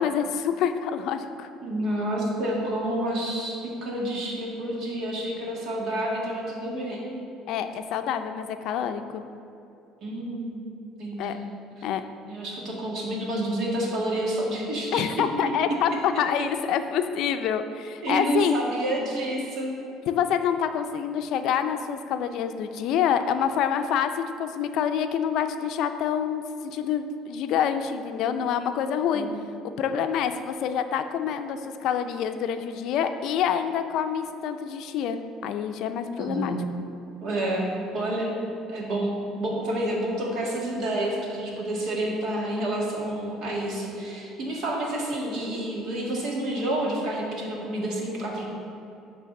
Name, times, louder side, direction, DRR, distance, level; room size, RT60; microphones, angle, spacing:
voice 1, 0.0-1.5 7.5-9.2 11.2-11.4 11.8-12.0 14.9-18.6 20.1-29.3 29.8-36.5, left 8 dB, 65° left, 8 dB, 0.4 m, -27 dB
voice 2, 1.6-7.2 10.0-10.6 11.0-11.4 12.3-16.0 18.0-19.8 29.1-29.4 36.2-36.6 37.2-38.4 38.7-48.5, right 1 dB, 60° right, -2 dB, 1.8 m, -29 dB
8.3 x 3.4 x 6.5 m, 2.7 s
cardioid pair, 110°, 0 cm